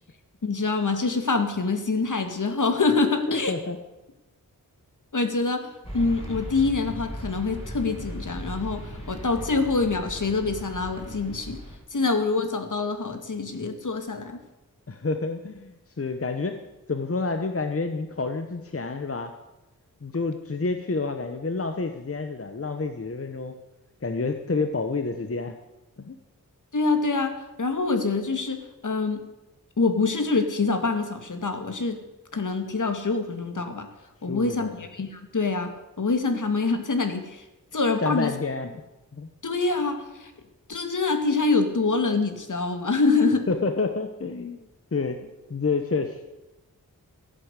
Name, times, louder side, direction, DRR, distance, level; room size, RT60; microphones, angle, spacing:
voice 1, 0.4-3.5 5.1-5.6 5.9-11.6 11.9-14.4 26.7-27.3 27.6-29.2 29.8-32.0 32.3-33.9 34.2-37.4 37.7-38.3 39.4-40.3 40.7-43.5, left 3 dB, 60° left, 6 dB, 2.1 m, -25 dB
voice 2, 3.3-3.8 14.9-16.6 16.9-19.3 20.0-23.5 24.0-25.5 26.0-26.2 34.3-34.7 38.0-38.7 39.1-39.3 43.5-44.6 44.9-45.2 45.5-46.2, left 3 dB, 40° left, 6 dB, 1.1 m, -29 dB
sound 1, 5.8-11.8, equal, 15° left, 5.7 m, -37 dB
14.0 x 11.0 x 8.2 m, 0.99 s
wide cardioid pair, 85°, 35 cm